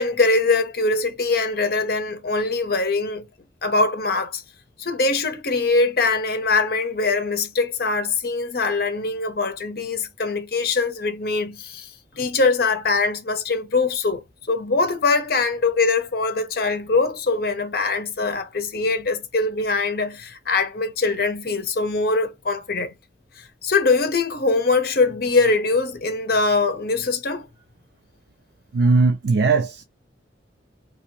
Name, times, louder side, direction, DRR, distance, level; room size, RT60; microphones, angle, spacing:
voice 1, 0.0-3.3 3.6-4.4 4.8-11.9 12.2-22.9 23.6-27.5, left 3 dB, 55° left, 0.7 m, -22 dB
voice 2, 28.7-29.8, right 4 dB, 70° right, 0.4 m, -18 dB
2.9 x 2.6 x 2.9 m
head